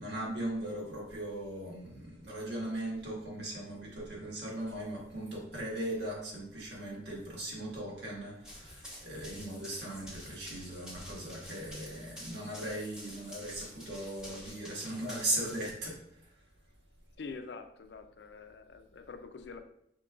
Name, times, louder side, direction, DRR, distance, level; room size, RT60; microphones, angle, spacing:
voice 1, 0.0-16.4, right 1 dB, 85° right, -3 dB, 1.5 m, -38 dB
Run, 8.4-15.7, equal, 5° right, 0.8 m, -48 dB
voice 2, 17.2-19.6, left 4 dB, 80° left, 8 dB, 0.5 m, -45 dB
5.3 x 3.7 x 2.4 m, 0.73 s
head